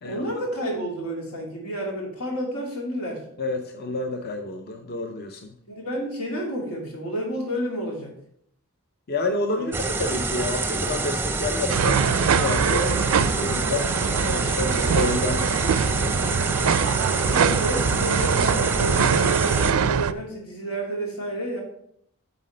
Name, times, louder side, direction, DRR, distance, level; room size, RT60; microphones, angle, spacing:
voice 1, 0.0-3.2 5.7-8.1 9.5-9.7 12.7-13.0 17.1-21.6, right 1 dB, 90° left, 0 dB, 2.6 m, -30 dB
voice 2, 3.4-5.6 9.1-12.9 13.3-13.9 14.2-15.9, left 2 dB, 45° left, 4 dB, 0.6 m, -29 dB
sound 1, 9.7-19.7, right 3 dB, 10° right, 0.5 m, -27 dB
sound 2, 11.7-20.1, right 6 dB, 75° right, 0.4 m, -23 dB
7.9 x 4.2 x 6.5 m, 0.68 s
head